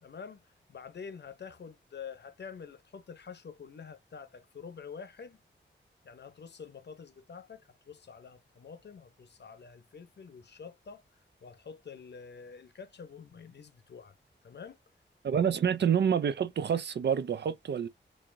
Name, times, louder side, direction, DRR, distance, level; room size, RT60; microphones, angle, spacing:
voice 1, 0.0-5.4 6.0-11.0 11.4-14.2 14.4-14.8, left 6 dB, 60° left, 0.8 m, -47 dB
voice 2, 15.2-17.9, right 8 dB, 60° right, 0.4 m, -27 dB
4.7 x 2.6 x 2.6 m
wide cardioid pair, 130°, 20 cm